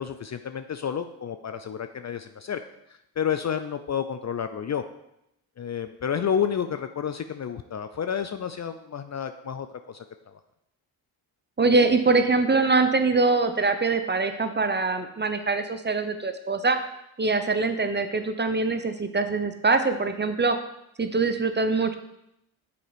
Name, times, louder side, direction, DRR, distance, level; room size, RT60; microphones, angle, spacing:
voice 1, 0.0-2.6 3.2-4.8 5.6-10.4, left 8 dB, 35° left, 9 dB, 0.5 m, -30 dB
voice 2, 11.6-16.8 17.2-20.6 21.0-21.9, right 3 dB, 20° right, 8 dB, 0.7 m, -23 dB
6.7 x 4.2 x 5.0 m, 0.82 s
supercardioid pair, 50°, 48 cm